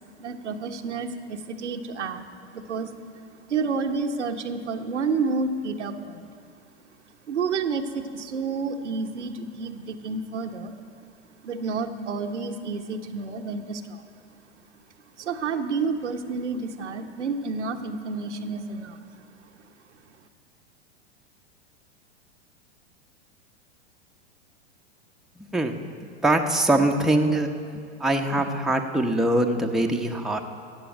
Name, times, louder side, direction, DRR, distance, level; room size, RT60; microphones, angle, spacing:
voice 1, 0.2-2.3 2.5-2.9 3.5-6.3 7.3-10.7 11.4-14.0 15.2-19.0, right 4 dB, 85° right, 4 dB, 1.2 m, -30 dB
voice 2, 26.2-27.5 28.0-30.4, right 1 dB, ahead, 2 dB, 0.9 m, -22 dB
14.5 x 8.4 x 9.0 m, 2.2 s
hypercardioid pair, 105°, 35 cm